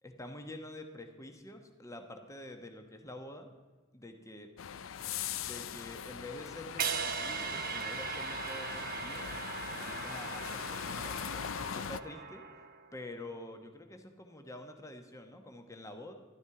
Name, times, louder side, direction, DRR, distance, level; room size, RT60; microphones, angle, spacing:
voice 1, 0.0-3.5 3.9-4.5 5.4-9.2 9.6-12.4 12.9-16.1, left 1 dB, 15° left, 5 dB, 1.1 m, -47 dB
sound 1, 4.6-12.0, left 8 dB, 75° left, 0.5 m, -41 dB
sound 2, 6.8-12.9, right 6 dB, 45° right, 0.9 m, -39 dB
13.0 x 12.5 x 4.8 m, 1.4 s
head